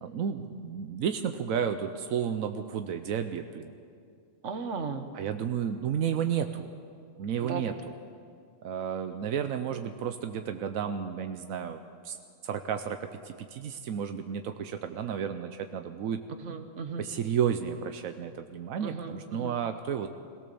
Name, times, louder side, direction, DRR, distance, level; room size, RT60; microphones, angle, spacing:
voice 1, 0.0-3.7 5.1-6.7 7.2-7.7 8.6-11.8 12.0-12.2 12.4-16.2 17.0-20.1, right 8 dB, 85° right, 8 dB, 1.2 m, -32 dB
voice 2, 4.4-5.1 7.4-7.7 16.4-17.1 18.8-19.5, right 5 dB, 60° right, 7 dB, 1.5 m, -36 dB
22.0 x 17.0 x 6.9 m, 2.3 s
omnidirectional pair, 1.4 m